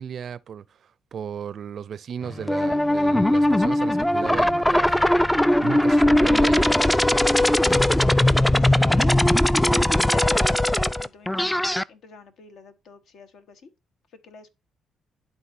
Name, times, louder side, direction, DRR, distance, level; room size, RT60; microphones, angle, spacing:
voice 1, 0.0-4.9 5.6-6.7, right 8 dB, 60° right, 0.4 m, -35 dB
sound 1, 2.2-9.9, left 1 dB, 25° left, 1.0 m, -40 dB
sound 2, 2.5-11.8, left 1 dB, 10° left, 0.3 m, -19 dB
sound 3, 4.9-5.4 7.7-7.9, left 3 dB, 45° left, 3.9 m, -41 dB
voice 2, 8.1-9.3 10.0-13.7 14.2-14.5, left 5 dB, 70° left, 1.2 m, -46 dB
11.5 x 3.9 x 2.7 m
cardioid pair, 90°, 0 cm